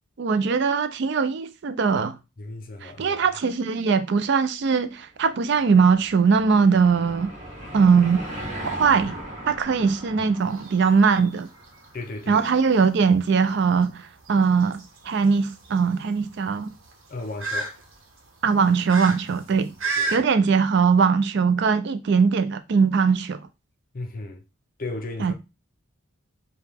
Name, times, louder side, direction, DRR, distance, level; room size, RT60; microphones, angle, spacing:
voice 1, 0.2-2.2 2.8-7.3 7.7-8.2 8.6-9.1 9.5-11.5 12.3-16.7 18.4-19.7 20.1-23.4 25.2-25.3, right 5 dB, 55° right, 0.4 m, -21 dB
voice 2, 2.4-3.2 10.2-10.3 11.9-12.4 17.1-17.8 20.0-20.3 23.9-24.4 24.8-25.3, left 2 dB, 45° left, 0.6 m, -35 dB
Car passing by / Engine, 5.2-12.1, right 1 dB, 35° right, 1.4 m, -38 dB
sound 1, 10.4-20.2, right 3 dB, 75° right, 1.0 m, -35 dB
4.7 x 2.2 x 3.4 m
head